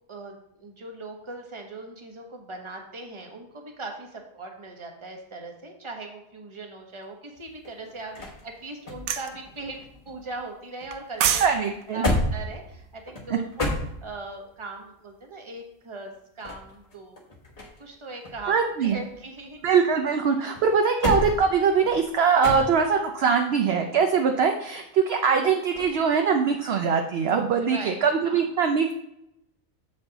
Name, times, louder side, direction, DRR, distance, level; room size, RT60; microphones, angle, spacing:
voice 1, 0.1-11.5 11.9-13.7 14.0-17.2 17.8-19.6 27.6-28.4, right 2 dB, 25° right, 2 dB, 1.0 m, -40 dB
sound 1, 7.4-10.5 10.8-14.4 16.2-17.9 18.2-20.0 20.5-23.1 25.7-26.0, left 1 dB, 30° left, 1.3 m, -32 dB
sound 2, 9.1-9.3 10.9-11.5 11.8-12.0, right 9 dB, 85° right, 1.1 m, -24 dB
voice 2, 11.4-12.0 18.5-19.0 19.6-28.9, right 6 dB, 60° right, 5 dB, 0.7 m, -22 dB
7.1 x 5.3 x 3.9 m, 0.80 s
omnidirectional pair, 1.4 m